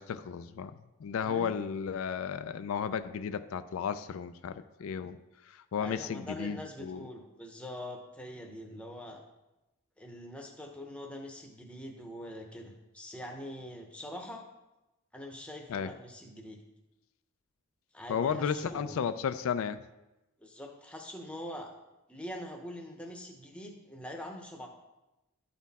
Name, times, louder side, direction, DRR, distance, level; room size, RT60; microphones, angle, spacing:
voice 1, 0.0-5.2 5.5-7.1 15.7-15.9 18.1-19.8, left 7 dB, 70° left, 11 dB, 0.3 m, -34 dB
voice 2, 1.2-1.5 5.8-9.2 10.0-14.4 15.1-16.6 17.9-19.0 20.4-21.7 22.1-24.7, left 1 dB, 5° left, 2 dB, 0.8 m, -43 dB
12.0 x 4.2 x 4.1 m, 0.98 s
head